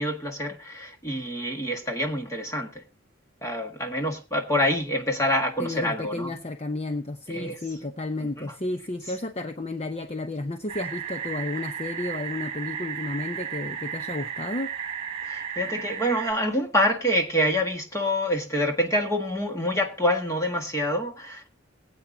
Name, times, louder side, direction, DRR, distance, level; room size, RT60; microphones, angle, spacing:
voice 1, 0.0-2.8 3.4-6.3 7.3-7.6 8.4-8.5 15.2-21.5, equal, 15° left, 1.6 m, -26 dB
voice 2, 5.6-14.8, left 2 dB, 30° left, 0.8 m, -32 dB
sound 1, 10.7-16.3, right 8 dB, 30° right, 2.0 m, -34 dB
20.5 x 8.8 x 2.8 m
head